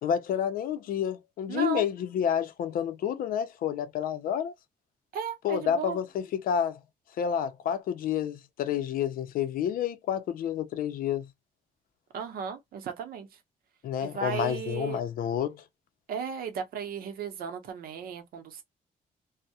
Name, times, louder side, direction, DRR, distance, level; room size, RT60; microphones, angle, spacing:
voice 1, 0.0-4.5 5.4-6.8 7.2-11.3 13.8-15.6, left 9 dB, 70° left, 0.4 m, -29 dB
voice 2, 1.5-1.9 5.1-6.0 12.1-13.3 14.0-15.0 16.1-18.6, right 6 dB, 75° right, 0.6 m, -35 dB
2.2 x 2.0 x 2.7 m
cardioid pair, 150°, 15 cm